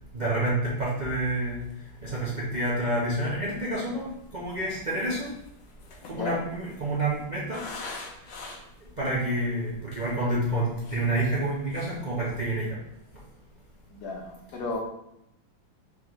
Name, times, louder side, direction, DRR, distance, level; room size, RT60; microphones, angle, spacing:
voice 1, 0.1-1.6 2.0-5.3 6.1-7.6 9.0-12.8, right 1 dB, 55° right, -7 dB, 0.4 m, -28 dB
sound 1, 1.7-1.8 2.2-2.3 2.5-3.0 3.8-8.9 9.4-9.5 9.8-10.2 10.6-11.5 11.7-12.0 12.3-12.6, left 3 dB, 80° left, 1.6 m, -44 dB
voice 2, 6.0-6.4 13.9-14.8, left 3 dB, 60° left, 0 dB, 1.3 m, -34 dB
4.1 x 3.6 x 3.1 m, 0.82 s
omnidirectional pair, 2.3 m